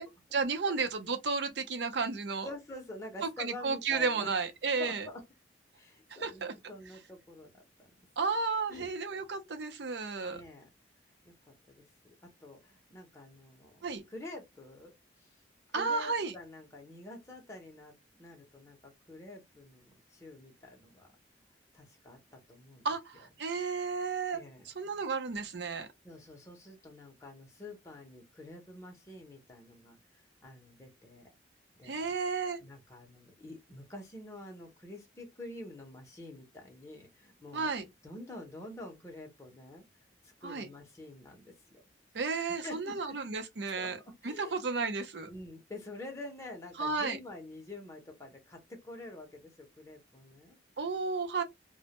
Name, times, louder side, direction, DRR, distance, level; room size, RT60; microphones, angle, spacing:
voice 1, 0.0-2.5 3.2-5.1 6.2-6.5 8.2-10.4 13.8-14.0 15.7-16.3 22.8-25.9 31.8-32.6 37.5-37.8 40.4-40.7 42.1-44.0 44.2-45.3 46.8-47.2 50.8-51.4, right 4 dB, 65° right, 0.6 m, -33 dB
voice 2, 2.4-4.3 4.8-5.2 5.8-8.1 8.7-8.9 10.3-10.7 11.2-14.9 15.2-15.3 15.7-21.1 21.7-22.9 24.3-24.7 26.0-31.3 31.8-32.1 32.6-37.7 38.0-39.8 40.2-41.8 42.6-43.2 43.8-44.6 45.3-50.6, left 1 dB, 15° left, 0.6 m, -47 dB
2.1 x 2.1 x 2.8 m
head